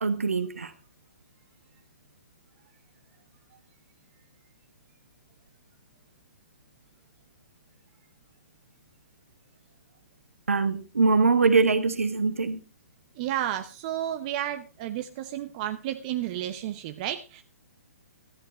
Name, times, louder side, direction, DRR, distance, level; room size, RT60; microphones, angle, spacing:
voice 1, 0.0-0.7 10.5-12.6, right 4 dB, 65° right, 10 dB, 1.5 m, -23 dB
voice 2, 13.2-17.4, right 12 dB, 30° right, 8 dB, 0.8 m, -32 dB
13.5 x 10.0 x 4.3 m, 0.31 s
figure-of-eight pair, 125°, 8 cm